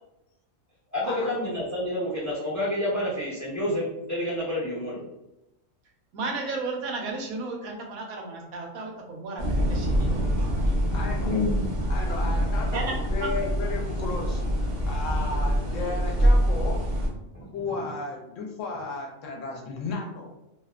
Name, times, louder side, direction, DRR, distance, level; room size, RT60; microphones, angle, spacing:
voice 1, 0.9-5.0 10.6-11.8 17.3-17.5, left 1 dB, 20° left, -8 dB, 0.5 m, -29 dB
voice 2, 6.1-10.1 12.7-12.9 13.2-13.3, right 3 dB, 90° right, 1 dB, 1.1 m, -33 dB
sound 1, 9.4-17.1, equal, 45° right, 0.5 m, -25 dB
voice 3, 10.9-11.3 11.9-14.4 14.9-16.8 17.5-20.3, left 3 dB, 70° left, 0 dB, 0.9 m, -34 dB
2.7 x 2.1 x 2.3 m, 0.91 s
omnidirectional pair, 1.5 m